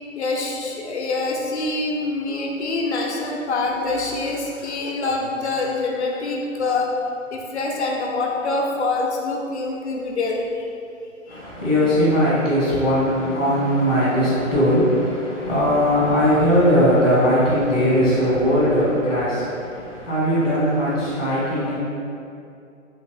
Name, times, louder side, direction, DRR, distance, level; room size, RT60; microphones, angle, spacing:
voice 1, 0.2-6.9 7.3-10.6 11.3-11.4, left 3 dB, 55° left, -1 dB, 0.6 m, -25 dB
voice 2, 11.3-21.8, equal, 10° left, -17 dB, 0.4 m, -19 dB
3.0 x 2.8 x 3.3 m, 2.5 s
figure-of-eight pair, 130°, 40 cm